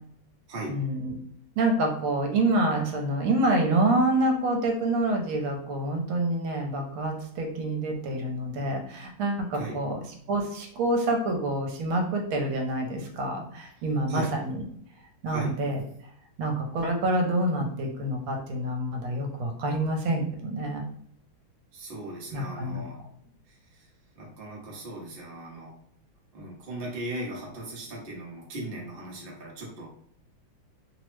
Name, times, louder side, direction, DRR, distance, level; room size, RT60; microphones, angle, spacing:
voice 1, 0.7-1.1 1.6-10.0 10.3-14.6 15.2-15.8 16.4-20.8 22.3-22.8, right 1 dB, 80° right, 3 dB, 1.4 m, -27 dB
voice 2, 21.7-23.0 23.5-23.9 24.2-25.7 26.3-29.9, right 1 dB, 55° right, -2 dB, 0.6 m, -38 dB
3.5 x 2.0 x 3.1 m, 0.66 s
omnidirectional pair, 2.3 m